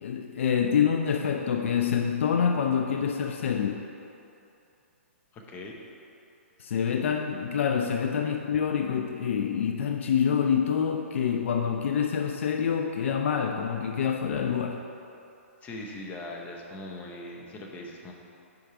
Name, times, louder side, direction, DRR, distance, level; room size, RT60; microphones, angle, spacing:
voice 1, 0.0-3.8 6.6-14.8, left 7 dB, 60° left, 4 dB, 0.4 m, -26 dB
voice 2, 5.3-5.8 15.6-18.1, left 1 dB, 20° left, 0 dB, 0.8 m, -40 dB
5.3 x 4.6 x 4.9 m, 2.7 s
hypercardioid pair, 125°, 8 cm